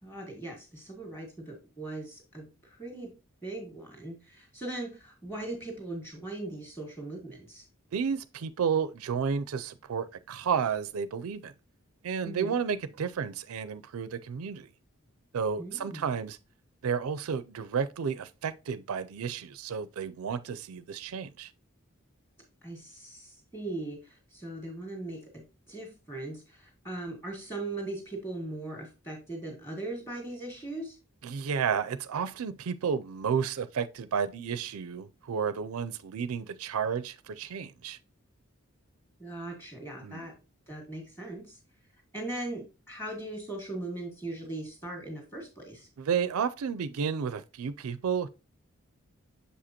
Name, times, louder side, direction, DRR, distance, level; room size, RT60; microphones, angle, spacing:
voice 1, 0.0-3.1 3.4-7.6 12.3-12.6 15.6-16.1 22.6-31.0 39.2-40.3 40.7-41.6 42.1-45.9, right 2 dB, 10° left, 1.8 m, -39 dB
voice 2, 7.9-11.5 12.0-14.7 15.3-16.4 16.8-21.5 31.2-38.0 40.0-40.3 46.0-48.3, right 6 dB, 90° right, 0.4 m, -32 dB
6.7 x 5.0 x 2.9 m
head